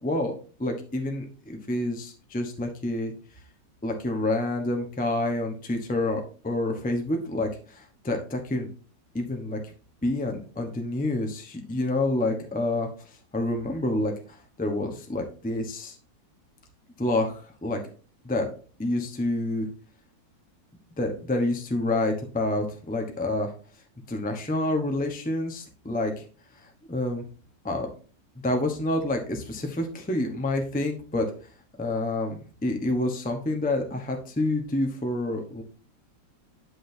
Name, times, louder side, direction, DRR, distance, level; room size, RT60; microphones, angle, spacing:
voice 1, 0.0-3.1 3.8-8.7 9.1-9.6 10.0-16.0 17.0-17.8 18.2-18.5 18.8-19.7 21.0-23.5 24.1-26.2 26.5-27.2 27.6-27.9 28.4-31.5 31.8-35.6, left 2 dB, 5° left, 3 dB, 0.7 m, -28 dB
10.0 x 6.2 x 2.7 m, 0.39 s
omnidirectional pair, 2.0 m